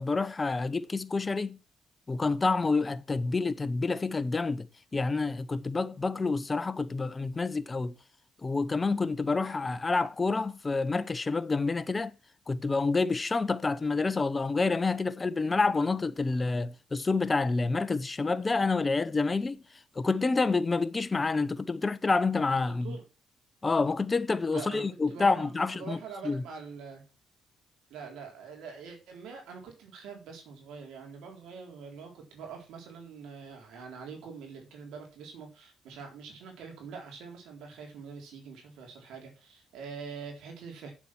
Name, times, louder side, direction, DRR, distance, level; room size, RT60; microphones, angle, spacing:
voice 1, 0.0-1.6 2.1-4.7 4.9-7.9 8.4-12.1 12.5-19.6 20.0-23.0 23.6-26.0 26.2-26.4, left 3 dB, 25° left, 0.9 m, -28 dB
voice 2, 22.7-23.0 24.5-27.0 27.9-40.9, right 5 dB, 85° right, 3.8 m, -44 dB
8.6 x 7.4 x 6.0 m
cardioid pair, 90°, 0 cm